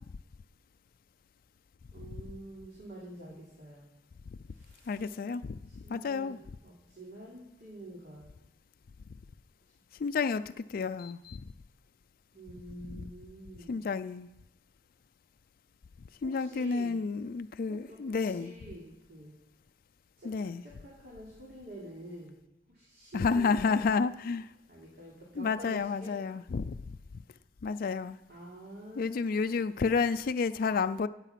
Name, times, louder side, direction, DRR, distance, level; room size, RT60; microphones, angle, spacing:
voice 1, 1.9-3.9 4.5-5.1 5.6-8.3 12.3-13.7 16.2-17.0 17.7-19.3 20.2-22.4 22.7-23.8 24.7-26.1 28.3-29.8, right 1 dB, 60° right, -5 dB, 3.2 m, -48 dB
voice 2, 4.9-6.4 10.0-11.4 12.9-13.1 13.7-14.3 16.2-18.5 20.2-20.6 23.1-24.5 25.4-27.0 27.6-28.2 29.0-31.1, left 5 dB, 55° left, 11 dB, 0.4 m, -31 dB
16.0 x 8.2 x 5.9 m, 0.91 s
head